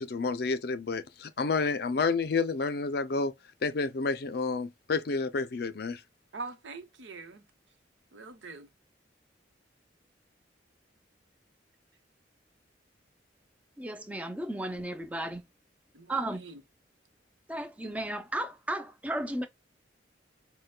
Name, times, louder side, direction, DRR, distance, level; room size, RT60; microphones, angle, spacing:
voice 1, 0.0-3.3 3.6-6.0, left 4 dB, 55° left, 0.5 m, -30 dB
voice 2, 6.3-7.5 8.1-8.7 15.9-16.6, right 3 dB, 85° right, 0.9 m, -43 dB
voice 3, 13.8-15.4 16.1-16.4 17.5-19.5, right 1 dB, 10° right, 0.5 m, -34 dB
6.5 x 2.2 x 2.2 m
head